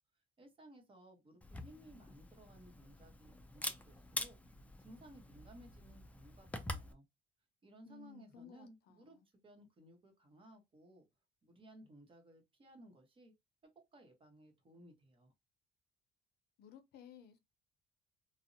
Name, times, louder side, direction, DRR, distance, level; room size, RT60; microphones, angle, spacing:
voice 1, 0.4-4.4 4.8-7.1 7.6-9.2 9.4-11.0 11.4-13.3 13.7-15.3, right 1 dB, 30° right, 0.9 m, -59 dB
Camera, 1.4-6.9, left 2 dB, 10° left, 0.4 m, -46 dB
voice 2, 7.8-9.3 16.6-17.4, left 8 dB, 70° left, 0.5 m, -57 dB
2.5 x 2.0 x 2.6 m
cardioid pair, 110°, 17 cm